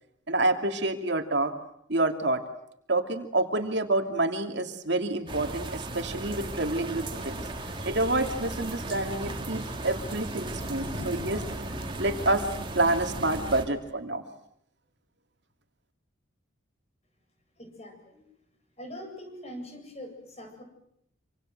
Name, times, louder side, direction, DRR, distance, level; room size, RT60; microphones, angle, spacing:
voice 1, 0.3-1.5 1.9-2.4 2.9-7.4 7.8-11.4 12.0-12.4 12.7-14.2, right 2 dB, 55° right, 5 dB, 2.7 m, -28 dB
sound 1, 5.3-13.7, right 2 dB, 25° right, 3.0 m, -36 dB
sound 2, 7.2-11.8, left 1 dB, 55° left, 5.6 m, -46 dB
voice 2, 17.6-18.2 18.8-20.6, equal, 30° left, 5 dB, 7.8 m, -43 dB
27.5 x 26.5 x 7.9 m, 0.74 s
head